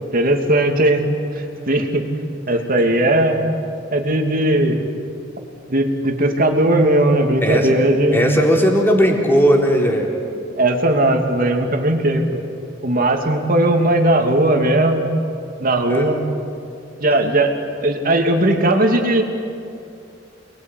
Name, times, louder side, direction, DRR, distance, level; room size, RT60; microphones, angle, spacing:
voice 1, 0.1-1.1 1.3-2.0 2.5-3.4 3.9-4.9 5.7-8.2 10.6-12.4 12.8-15.0 15.6-16.2 17.0-17.5 17.8-19.2, right 1 dB, 50° right, 4 dB, 2.8 m, -17 dB
voice 2, 8.1-10.1 15.8-16.1, equal, 10° left, 0 dB, 3.9 m, -17 dB
29.0 x 21.5 x 9.5 m, 2.5 s
head